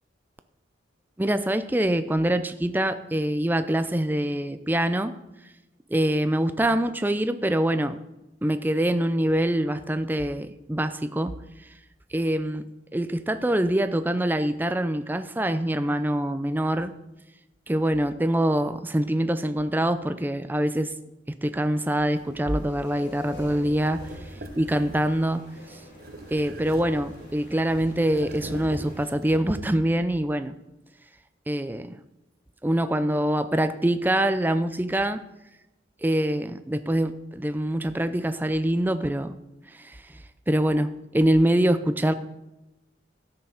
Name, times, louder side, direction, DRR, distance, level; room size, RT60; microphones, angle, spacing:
voice 1, 1.2-5.1 5.9-8.0 8.4-11.4 12.1-12.6 12.9-16.9 17.7-20.9 21.4-24.0 24.6-25.5 26.3-30.5 31.5-32.0 32.6-35.2 36.0-39.4 39.8-40.0 40.5-42.1, right 1 dB, 10° right, 11 dB, 0.4 m, -24 dB
sound 1, 22.1-29.1, equal, 70° left, 4.5 m, -45 dB
sound 2, 23.8-25.2 26.0-27.5 28.0-30.0, right 1 dB, 55° right, 0.9 m, -41 dB
13.0 x 6.8 x 5.7 m, 0.96 s
head